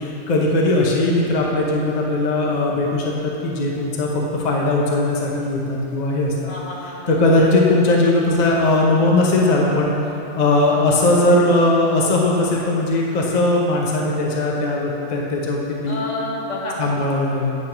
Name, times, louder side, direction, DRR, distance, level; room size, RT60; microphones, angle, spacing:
voice 1, 0.0-6.5 7.1-9.9 10.3-16.0 16.8-17.6, left 2 dB, 40° left, -2 dB, 0.8 m, -19 dB
voice 2, 6.5-7.4 10.5-10.8 15.9-16.8, left 1 dB, 75° left, -4 dB, 1.6 m, -30 dB
9.6 x 3.4 x 5.8 m, 2.8 s
omnidirectional pair, 1.3 m